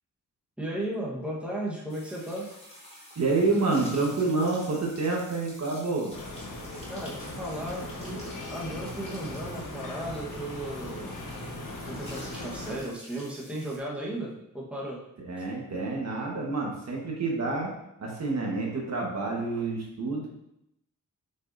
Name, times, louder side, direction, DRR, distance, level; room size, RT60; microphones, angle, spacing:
voice 1, 0.6-2.5 6.9-8.2 8.5-11.2 11.8-15.0, right 1 dB, 5° right, -5 dB, 1.4 m, -35 dB
sound 1, 1.9-13.8, equal, 20° left, 2.2 m, -49 dB
voice 2, 3.1-6.1 15.2-17.7 18.0-20.3, right 3 dB, 55° right, -2 dB, 1.4 m, -28 dB
sound 2, 6.1-12.8, left 2 dB, 75° left, 1.2 m, -39 dB
8.0 x 5.5 x 2.7 m, 0.82 s
wide cardioid pair, 150°, 32 cm